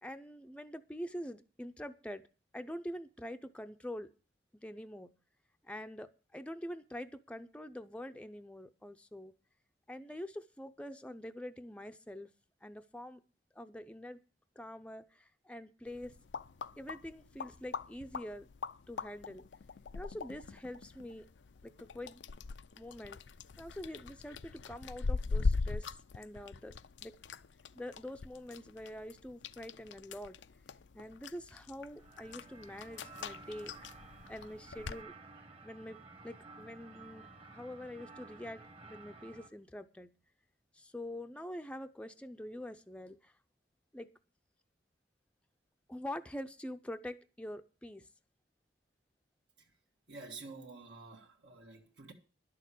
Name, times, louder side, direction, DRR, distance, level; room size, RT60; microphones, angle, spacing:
voice 1, 0.0-2.2 2.5-4.1 4.6-5.1 5.6-9.3 9.9-12.3 12.6-13.2 13.5-14.2 14.6-16.2 16.8-18.5 18.9-19.4 19.9-21.3 21.6-22.2 22.7-23.2 23.6-26.8 27.0-27.1 27.7-30.4 30.9-33.7 34.3-35.1 35.6-36.0 36.2-40.1 40.7-43.3 43.9-44.1 45.9-48.1, left 1 dB, 5° left, 0.6 m, -45 dB
sound 1, 15.9-35.0, left 4 dB, 80° left, 0.5 m, -41 dB
sound 2, 31.9-39.5, right 3 dB, 30° right, 1.3 m, -53 dB
voice 2, 50.1-52.1, right 3 dB, 70° right, 1.7 m, -49 dB
11.5 x 6.7 x 8.3 m
head